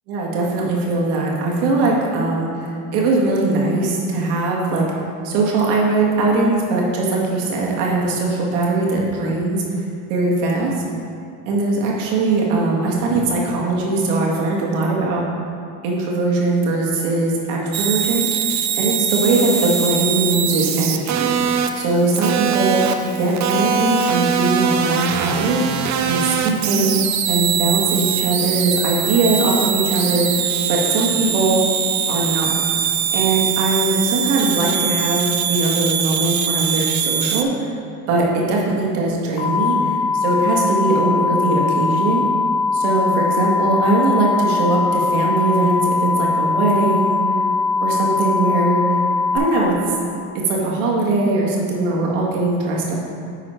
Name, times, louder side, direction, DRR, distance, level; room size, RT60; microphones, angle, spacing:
voice 1, 0.1-4.8 5.2-9.6 10.1-10.7 11.5-15.2 15.8-18.5 18.8-25.7 26.1-27.0 27.3-31.6 32.1-32.6 33.1-37.7 38.1-42.3 42.7-47.2 47.8-48.8 49.3-49.8 50.5-52.9, right 2 dB, 90° right, -2 dB, 1.7 m, -20 dB
sound 1, 17.7-37.4, right 8 dB, 40° right, 0.6 m, -22 dB
sound 2, 39.4-49.4, left 4 dB, 80° left, 1.8 m, -20 dB
10.5 x 4.2 x 4.4 m, 2.5 s
supercardioid pair, 100°, 43 cm